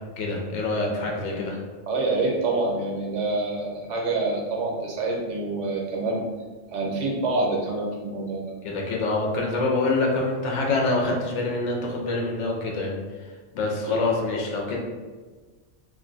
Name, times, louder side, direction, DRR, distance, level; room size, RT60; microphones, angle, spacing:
voice 1, 0.2-1.6 8.6-12.9 13.5-14.8, left 3 dB, 75° left, -1 dB, 0.9 m, -25 dB
voice 2, 1.9-6.2 6.7-8.5 13.9-14.0, right 2 dB, 75° right, -1 dB, 1.0 m, -26 dB
2.5 x 2.2 x 3.8 m, 1.4 s
omnidirectional pair, 1.3 m